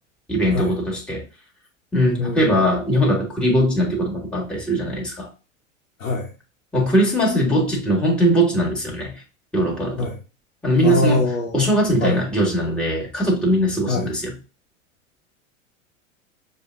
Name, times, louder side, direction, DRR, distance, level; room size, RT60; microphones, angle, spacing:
voice 1, 0.3-1.2 1.9-5.3 6.7-9.1 9.5-10.1 10.6-11.2 11.5-14.3, equal, ahead, 1.6 m, -20 dB
voice 2, 2.2-2.6 6.0-6.3 10.0-10.2 10.8-11.7 12.0-12.2 13.9-14.1, left 3 dB, 75° left, 0.9 m, -23 dB
6.5 x 2.3 x 2.5 m
figure-of-eight pair, 90°, 39 cm